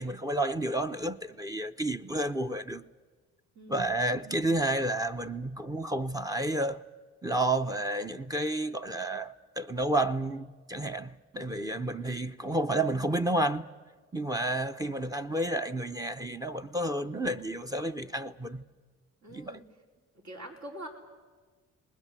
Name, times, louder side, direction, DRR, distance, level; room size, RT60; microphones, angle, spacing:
voice 1, 0.0-2.8 3.7-6.8 7.2-13.7 14.1-18.7 19.3-19.6, right 1 dB, 10° right, 0.7 m, -31 dB
voice 2, 3.5-3.9 19.2-19.6 20.2-20.9, right 1 dB, 65° right, 4.6 m, -44 dB
27.5 x 20.0 x 7.7 m
cardioid pair, 90°, 30 cm